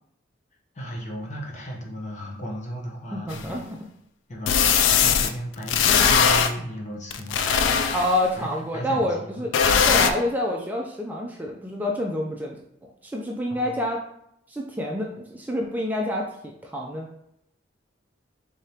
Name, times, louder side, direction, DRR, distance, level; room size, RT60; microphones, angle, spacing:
voice 1, 0.7-3.7 4.3-7.9 8.4-10.0 13.5-13.8, equal, 40° left, -2 dB, 0.9 m, -36 dB
voice 2, 3.1-3.8 7.9-9.5 9.8-12.6 13.0-14.0 14.5-16.4 16.6-17.1, left 1 dB, 10° right, -1 dB, 0.4 m, -27 dB
sound 1, 3.3-3.4 4.5-5.3 5.7-6.5 7.1-8.2 9.5-10.1, left 7 dB, 85° left, 0.3 m, -19 dB
3.6 x 3.4 x 2.8 m, 0.75 s
head